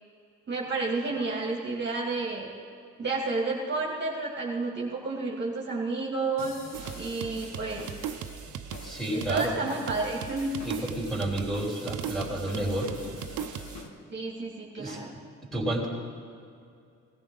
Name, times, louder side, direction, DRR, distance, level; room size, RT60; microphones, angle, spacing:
voice 1, 0.5-2.5 3.0-6.5 6.9-7.9 9.1-10.5 14.1-15.1, right 3 dB, 35° right, -3 dB, 2.1 m, -31 dB
sound 1, 6.4-13.9, left 3 dB, 70° left, 2.0 m, -46 dB
sound 2, 6.7-13.8, right 9 dB, 75° right, 0.7 m, -39 dB
voice 2, 8.8-9.6 10.6-12.9 14.8-15.0 15.5-15.9, right 1 dB, ahead, -3 dB, 3.6 m, -30 dB
18.0 x 14.5 x 3.9 m, 2.4 s
cardioid pair, 90°, 30 cm